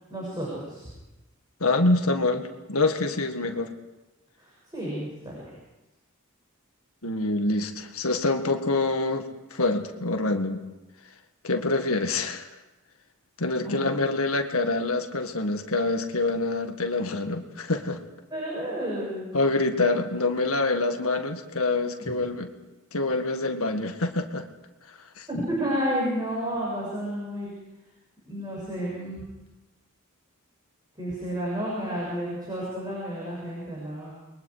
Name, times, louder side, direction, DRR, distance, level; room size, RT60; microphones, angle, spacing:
voice 1, 0.1-0.9 4.4-5.5 13.6-13.9 18.3-19.3 25.3-27.5 28.3-29.3 31.0-34.1, equal, 20° right, -5 dB, 6.9 m, -31 dB
voice 2, 1.6-3.7 7.0-10.6 11.4-12.5 13.4-18.0 19.3-22.5 22.9-24.4 25.2-25.3, left 2 dB, 75° left, 5 dB, 1.8 m, -26 dB
29.0 x 22.5 x 5.0 m, 1.0 s
head